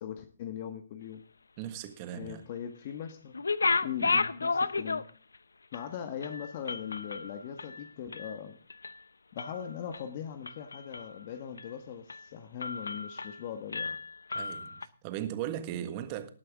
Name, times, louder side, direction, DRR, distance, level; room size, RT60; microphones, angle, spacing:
voice 1, 0.0-1.2 2.1-3.3 3.8-5.0 5.7-8.6 9.3-14.0, left 8 dB, 40° left, 1.4 m, -40 dB
voice 2, 1.6-2.5 4.0-4.2 14.3-16.3, right 11 dB, 30° right, 1.5 m, -38 dB
sound 1, 3.3-5.4 5.7-5.8 6.2-8.4 8.7-9.0 9.4-10.0 10.5-11.2 11.6-11.7 12.1-12.3 12.6-13.4 13.7-14.9, left 4 dB, 85° left, 0.7 m, -33 dB
19.0 x 8.6 x 3.6 m
hypercardioid pair, 145°, 0 cm